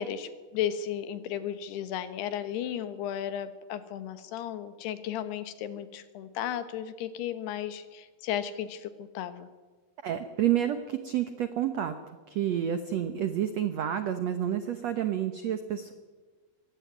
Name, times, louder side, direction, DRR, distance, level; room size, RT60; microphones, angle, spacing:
voice 1, 0.0-9.5, left 10 dB, 80° left, 11 dB, 3.3 m, -34 dB
voice 2, 10.0-11.9 12.3-15.9, right 10 dB, 85° right, 9 dB, 1.5 m, -29 dB
21.5 x 16.5 x 9.5 m, 1.4 s
omnidirectional pair, 4.7 m